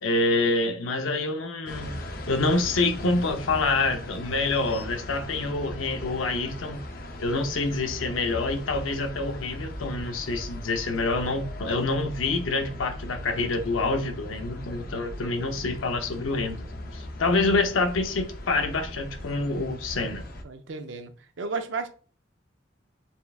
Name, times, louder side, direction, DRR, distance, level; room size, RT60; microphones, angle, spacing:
voice 1, 0.0-2.0 2.3-6.8 7.2-16.6 16.9-20.2, left 3 dB, 85° left, 0.7 m, -27 dB
sound 1, 1.7-20.4, left 1 dB, 45° left, 0.5 m, -38 dB
voice 2, 20.4-21.9, right 4 dB, 65° right, 0.5 m, -33 dB
4.4 x 3.4 x 2.3 m
head